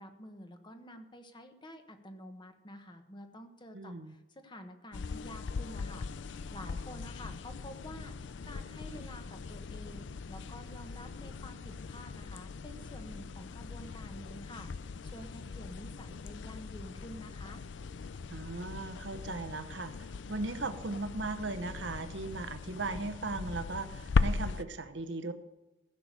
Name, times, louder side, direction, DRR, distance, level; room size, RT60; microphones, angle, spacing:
voice 1, 0.0-6.1 6.5-17.6, left 1 dB, 25° left, 6 dB, 1.2 m, -49 dB
voice 2, 3.7-4.1 18.3-25.3, right 3 dB, 75° right, 10 dB, 1.0 m, -38 dB
sound 1, 4.9-24.6, left 4 dB, 75° left, 0.5 m, -39 dB
15.0 x 6.7 x 6.7 m, 1.1 s
head